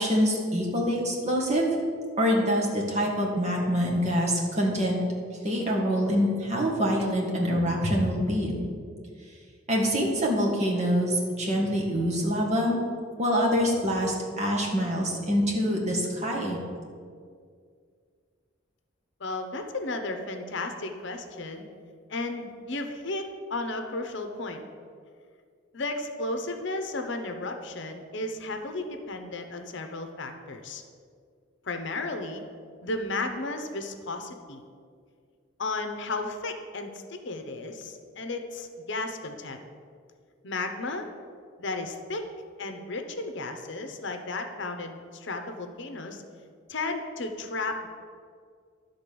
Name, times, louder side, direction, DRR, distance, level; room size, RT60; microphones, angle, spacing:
voice 1, 0.0-1.8 2.2-5.0 5.4-8.6 9.7-12.8 13.2-16.6, equal, 35° right, -2 dB, 1.6 m, -25 dB
voice 2, 19.2-21.6 22.1-24.6 25.7-30.8 31.6-32.4 32.8-34.6 35.6-39.6 40.4-41.1 41.6-42.2 42.6-46.2 46.7-47.9, left 2 dB, 60° left, 6 dB, 0.8 m, -34 dB
11.5 x 4.0 x 6.8 m, 2.1 s
head